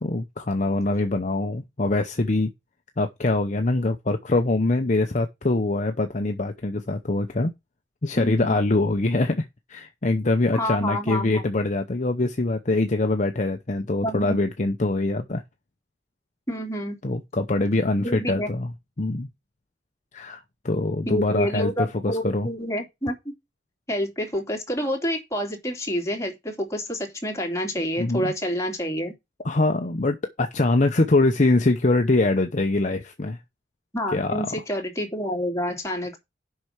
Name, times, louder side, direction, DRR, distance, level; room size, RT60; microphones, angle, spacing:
voice 1, 0.0-2.5 3.0-7.5 8.0-15.4 17.0-18.7 19.0-19.3 20.1-20.4 20.6-22.5 28.0-28.3 29.4-33.4 34.1-34.3, left 2 dB, 40° left, 0.8 m, -23 dB
voice 2, 8.2-8.6 10.5-11.4 14.0-14.4 16.5-17.0 18.0-18.5 21.1-23.3 23.9-29.1 33.9-36.2, equal, 15° left, 2.9 m, -28 dB
7.6 x 5.8 x 6.5 m
head